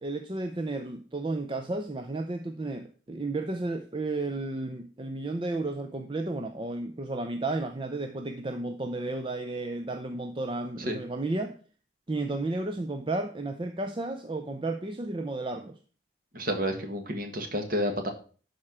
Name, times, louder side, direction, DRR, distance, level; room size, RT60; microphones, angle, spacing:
voice 1, 0.0-11.6 12.1-15.8, right 2 dB, 25° right, 0.5 m, -33 dB
voice 2, 16.3-18.1, equal, 45° right, 1.7 m, -30 dB
11.5 x 4.4 x 6.0 m
head